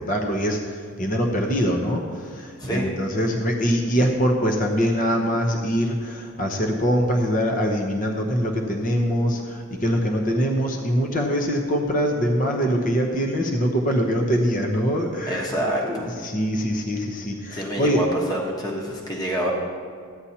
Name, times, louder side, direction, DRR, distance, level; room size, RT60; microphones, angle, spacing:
voice 1, 0.0-15.5 15.9-18.0, equal, 35° left, 2 dB, 0.9 m, -23 dB
voice 2, 15.3-16.1 17.5-19.5, right 1 dB, 15° left, -2 dB, 1.2 m, -27 dB
14.5 x 9.6 x 2.9 m, 2.1 s
head